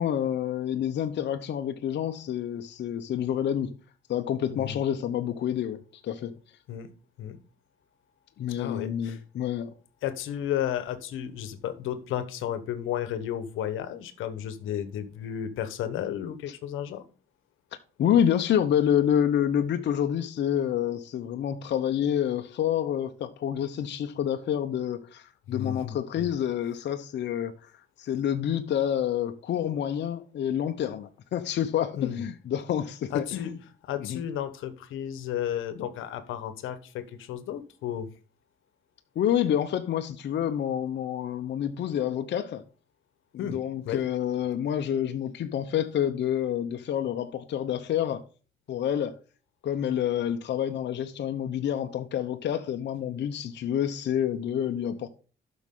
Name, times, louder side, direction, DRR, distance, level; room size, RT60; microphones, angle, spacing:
voice 1, 0.0-3.7 4.1-6.3 8.4-9.7 18.0-27.5 28.0-33.5 34.0-34.2 39.2-42.6 43.3-48.2 48.7-49.1 49.6-55.1, left 10 dB, 60° left, 0.8 m, -28 dB
voice 2, 4.5-4.8 6.7-6.9 7.2-7.4 8.6-9.2 10.0-17.0 25.5-26.3 32.0-32.2 33.1-33.5 33.8-38.1 43.4-43.6 43.8-44.1, left 10 dB, 85° left, 1.1 m, -33 dB
12.0 x 6.2 x 3.8 m
cardioid pair, 90°, 20 cm